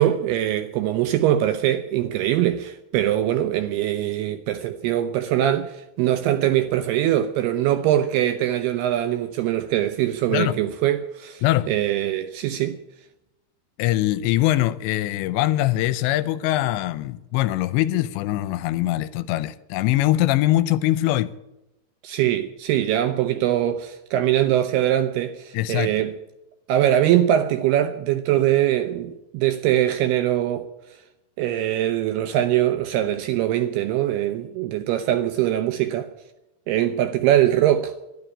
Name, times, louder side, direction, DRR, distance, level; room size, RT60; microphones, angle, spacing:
voice 1, 0.0-12.8 22.0-26.1 26.7-30.7 31.4-36.1 36.7-37.9, right 12 dB, 80° right, 2.4 m, -22 dB
voice 2, 11.4-11.7 13.8-21.3 25.5-25.9, left 15 dB, 80° left, 2.8 m, -22 dB
12.0 x 11.0 x 9.6 m
omnidirectional pair, 5.3 m